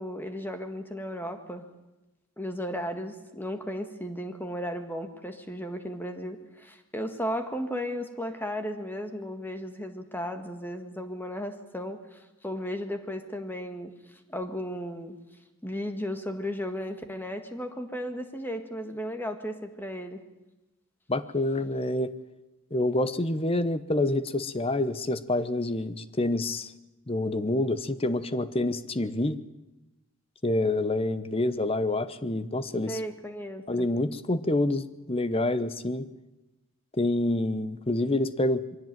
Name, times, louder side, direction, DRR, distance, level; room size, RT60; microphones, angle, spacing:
voice 1, 0.0-1.7 2.4-13.9 14.3-15.2 15.6-20.2 32.9-33.9, equal, 10° left, 7 dB, 1.8 m, -35 dB
voice 2, 21.1-22.1 22.7-26.7 27.1-29.4 30.4-33.0 33.7-36.1 36.9-38.8, left 2 dB, 25° left, 14 dB, 0.9 m, -27 dB
23.0 x 16.5 x 9.1 m, 1.0 s
head